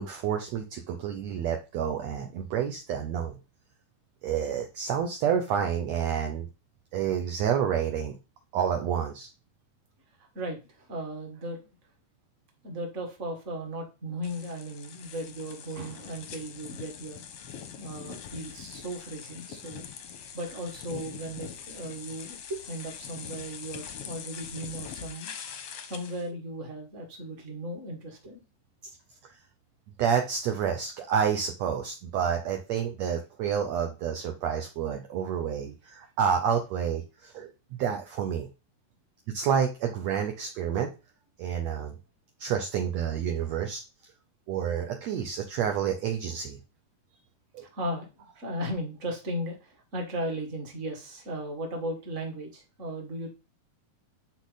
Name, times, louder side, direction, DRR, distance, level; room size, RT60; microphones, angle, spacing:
voice 1, 0.0-3.4 4.2-6.5 6.9-8.1 8.5-9.3 30.0-38.5 39.3-40.9 41.4-41.9 42.4-43.8 44.5-46.6 47.5-47.6, right 8 dB, 75° right, 4 dB, 1.6 m, -29 dB
voice 2, 10.2-11.6 12.6-17.2 17.8-19.9 20.3-25.3 25.8-28.4 47.6-48.1 48.3-53.3, right 1 dB, 25° right, 1 dB, 1.7 m, -36 dB
sound 1, 14.2-26.3, left 8 dB, 70° left, 1.5 m, -43 dB
10.0 x 4.3 x 4.1 m, 0.30 s
omnidirectional pair, 4.1 m